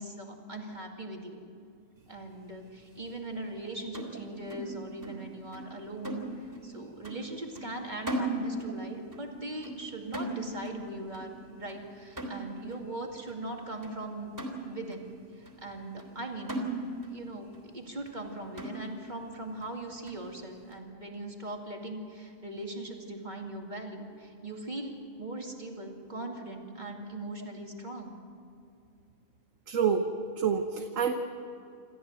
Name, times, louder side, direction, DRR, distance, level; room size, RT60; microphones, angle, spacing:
voice 1, 0.0-1.4 2.1-14.3 14.6-15.1 15.4-16.6 17.0-28.2, right 2 dB, 35° right, 1 dB, 2.4 m, -40 dB
sound 1, 3.9-5.3 5.5-5.8 6.0-6.7 7.0-7.3 7.6-8.8 9.1-9.3 9.6-9.9 10.1-10.8 11.1-11.4 11.7-11.9 12.2-12.8 13.3-13.4 13.8-14.0 14.4-15.1 15.5-15.6 16.0-16.2 16.5-17.2 17.5-17.6 18.1-18.2 18.6-19.1 19.6-19.7 20.1-20.3, right 2 dB, 15° right, 3.3 m, -37 dB
voice 2, 29.7-30.1 30.4-31.1, right 7 dB, 75° right, 5 dB, 1.4 m, -27 dB
27.5 x 14.0 x 7.8 m, 2.6 s
omnidirectional pair, 1.4 m